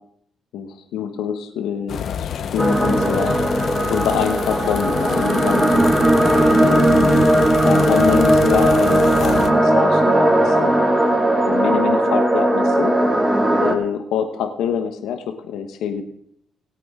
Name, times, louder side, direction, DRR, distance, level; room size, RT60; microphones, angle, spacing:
voice 1, 0.5-3.3 3.9-5.9 6.6-7.3 7.6-10.8 11.5-12.9 13.6-16.0, left 7 dB, 85° left, 5 dB, 1.1 m, -25 dB
sound 1, 1.9-9.5, left 8 dB, 60° left, 0.8 m, -27 dB
sound 2, 2.6-13.7, right 1 dB, 15° right, 1.7 m, -17 dB
18.0 x 8.6 x 3.7 m, 0.71 s
cardioid pair, 90°, 0 cm